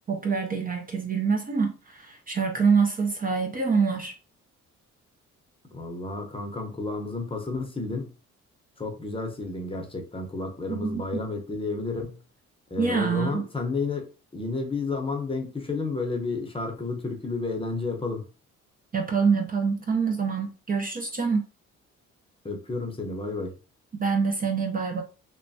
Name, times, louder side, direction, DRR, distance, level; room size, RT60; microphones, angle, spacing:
voice 1, 0.1-4.1 10.7-11.0 12.8-13.4 18.9-21.4 23.9-25.0, right 5 dB, 30° right, 0.5 m, -25 dB
voice 2, 5.7-8.1 8.8-12.2 12.7-18.3 22.4-23.5, left 3 dB, 20° left, 0.7 m, -31 dB
3.1 x 2.1 x 2.7 m
cardioid pair, 90°, 30 cm